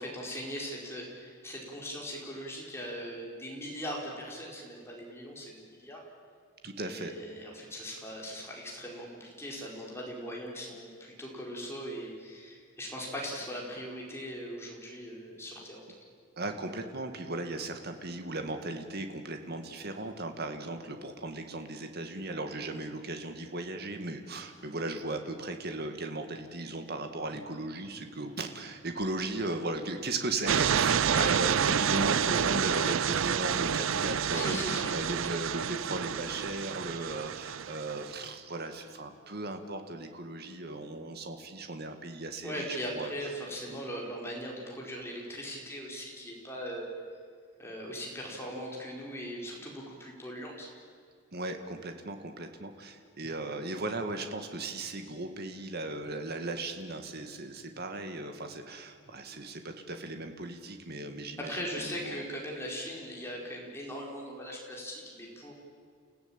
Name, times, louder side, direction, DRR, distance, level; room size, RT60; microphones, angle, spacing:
voice 1, 0.0-6.0 6.8-15.8 31.0-31.4 34.3-35.4 42.4-46.9 47.6-50.7 61.4-65.5, equal, 10° left, -2 dB, 4.8 m, -39 dB
voice 2, 6.6-7.1 16.4-43.1 43.7-43.8 51.3-62.2, right 2 dB, 50° right, 6 dB, 2.0 m, -37 dB
sound 1, 30.5-38.1, right 7 dB, 65° right, 0.5 m, -29 dB
30.0 x 16.5 x 8.9 m, 2.1 s
head